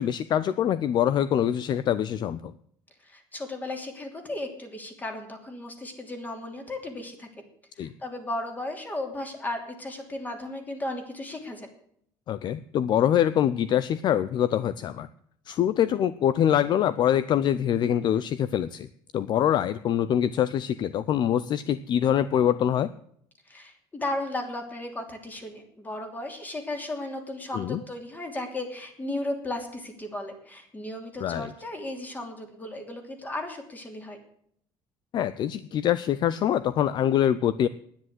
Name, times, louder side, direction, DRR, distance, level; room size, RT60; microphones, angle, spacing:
voice 1, 0.0-2.5 7.8-7.9 12.3-15.1 15.5-18.9 19.1-22.9 27.5-27.8 31.2-31.5 35.1-37.7, left 10 dB, 45° left, 16 dB, 0.5 m, -24 dB
voice 2, 3.0-7.3 7.8-11.7 23.5-34.2, left 1 dB, 15° left, 5 dB, 2.9 m, -35 dB
10.5 x 10.0 x 7.7 m, 0.65 s
cardioid pair, 125°, 10 cm